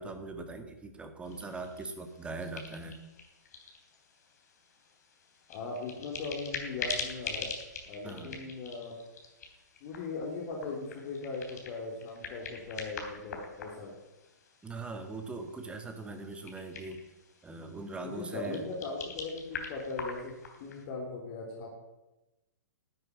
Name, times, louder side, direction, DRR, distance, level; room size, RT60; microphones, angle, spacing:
voice 1, 0.0-3.0 8.0-8.4 14.6-17.0 17.4-18.7, right 3 dB, 10° right, 6 dB, 1.8 m, -41 dB
sound 1, 1.2-20.8, left 5 dB, 60° left, 3.2 m, -44 dB
voice 2, 5.5-7.5 7.9-8.9 9.8-13.9 18.0-20.3 20.6-21.8, left 3 dB, 40° left, -1 dB, 3.3 m, -39 dB
12.5 x 7.8 x 9.5 m, 1.0 s
figure-of-eight pair, 115°, 10 cm